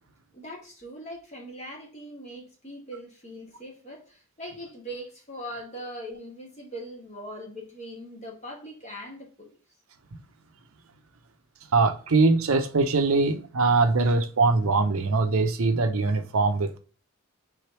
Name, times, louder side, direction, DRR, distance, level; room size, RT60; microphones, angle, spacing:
voice 1, 0.3-9.5, equal, 30° left, 1.4 m, -41 dB
voice 2, 11.7-16.8, right 3 dB, 75° right, 0.7 m, -22 dB
3.5 x 3.4 x 4.5 m
head